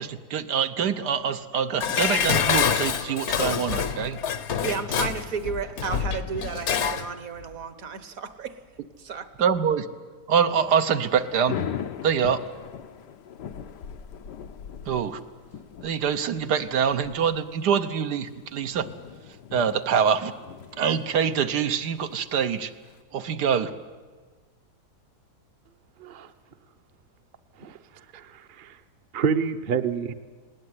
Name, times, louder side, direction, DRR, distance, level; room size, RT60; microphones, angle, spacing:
voice 1, 0.0-4.2 9.4-9.9 10.3-11.6 12.0-12.4 14.9-15.2 15.8-18.9 19.5-20.3 20.8-22.7 23.1-23.7, right 7 dB, 80° right, 8 dB, 1.5 m, -25 dB
Dishes pots and pans, 1.8-7.1 7.4-7.5, left 8 dB, 55° left, 0.9 m, -26 dB
voice 2, 4.6-8.6 9.0-9.3, right 6 dB, 60° right, 12 dB, 1.5 m, -33 dB
Thunder / Rain, 10.4-23.0, left 9 dB, 90° left, 1.5 m, -40 dB
voice 3, 28.1-28.8 29.1-30.1, right 6 dB, 40° right, 9 dB, 0.8 m, -28 dB
19.5 x 18.5 x 9.6 m, 1.4 s
omnidirectional pair, 1.8 m